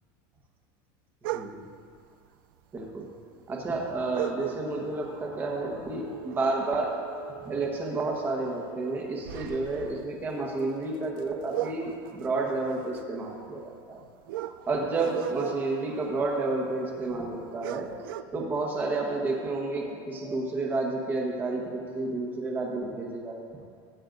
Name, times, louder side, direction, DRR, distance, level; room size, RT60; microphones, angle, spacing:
voice 1, 1.2-1.6 2.7-3.1 3.5-7.0 7.4-14.0 14.7-17.9 18.3-23.4, right 3 dB, 15° right, 0 dB, 1.2 m, -30 dB
sound 1, 1.2-1.8 2.8-2.9 3.2-3.3 4.1-5.1 5.4-5.7 6.1-7.7 8.0-8.2 8.7-17.0 17.3-17.4 17.6-18.2, right 14 dB, 85° right, 0.4 m, -38 dB
Telephone, 6.0-9.1 9.5-9.6, right 14 dB, 45° right, 0.7 m, -46 dB
17.5 x 8.8 x 2.6 m, 2.3 s
supercardioid pair, 175°, 11 cm